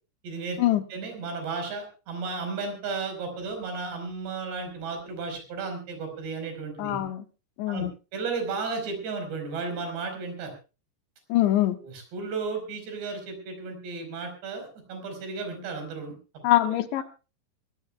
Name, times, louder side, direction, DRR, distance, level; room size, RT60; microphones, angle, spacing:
voice 1, 0.2-0.6 0.9-7.0 7.7-7.9 8.1-10.5 11.7-16.2 16.7-17.0, right 4 dB, 70° right, 5 dB, 6.7 m, -34 dB
voice 2, 6.8-7.2 7.6-7.9 11.3-11.8 16.4-17.0, left 14 dB, 85° left, 8 dB, 3.3 m, -23 dB
23.0 x 18.0 x 2.3 m, 0.33 s
omnidirectional pair, 5.2 m